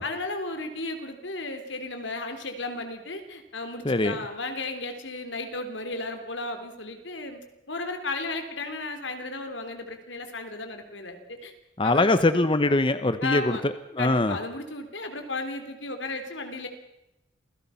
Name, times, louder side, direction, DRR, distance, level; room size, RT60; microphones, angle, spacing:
voice 1, 0.0-11.5 11.8-12.1 13.2-13.6 14.0-16.7, left 2 dB, 85° left, 7 dB, 3.2 m, -34 dB
voice 2, 3.8-4.2 11.8-14.4, left 2 dB, 30° left, 11 dB, 0.9 m, -23 dB
27.5 x 17.0 x 5.7 m, 0.93 s
head